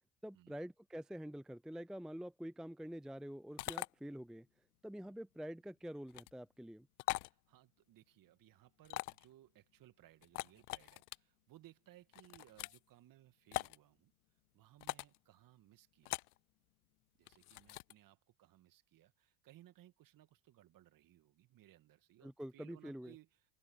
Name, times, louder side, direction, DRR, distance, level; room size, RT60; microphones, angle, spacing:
voice 1, 0.2-4.5 4.8-6.9 22.2-23.1, equal, ahead, 0.6 m, -47 dB
sound 1, 3.6-3.9 6.1-6.3 7.0-7.3 8.8-9.3 10.2-11.2 12.1-12.8 13.5-13.8 14.8-15.2 16.0-16.4 17.3-17.9, left 21 dB, 75° left, 0.6 m, -42 dB
voice 2, 7.2-14.1 14.5-16.2 17.2-23.5, right 14 dB, 45° right, 2.2 m, -64 dB
open air
hypercardioid pair, 80°, 45 cm